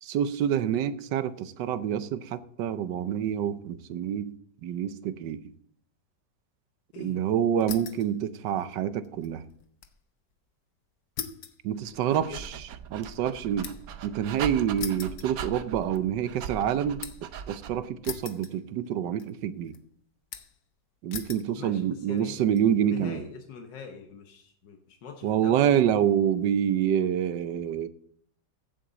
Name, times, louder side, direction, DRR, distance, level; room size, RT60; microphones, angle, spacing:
voice 1, 0.0-4.3 4.6-5.4 7.0-9.4 11.6-12.6 12.9-13.7 14.0-17.0 17.5-19.7 21.0-23.2 25.2-27.9, right 9 dB, 85° right, 1.4 m, -27 dB
sound 1, 7.6-8.1 8.5-10.0 10.3-10.4 11.2-14.0 14.8-15.9 16.3-17.3 18.0-18.9 19.2-19.8 20.3-20.7 21.1-21.5 22.2-22.6, left 8 dB, 75° left, 1.5 m, -41 dB
Dog, 11.8-17.9, right 7 dB, 65° right, 1.1 m, -40 dB
voice 2, 11.9-12.4 21.5-22.4 22.9-25.7, left 6 dB, 90° left, 1.7 m, -44 dB
15.0 x 8.0 x 4.0 m
omnidirectional pair, 1.9 m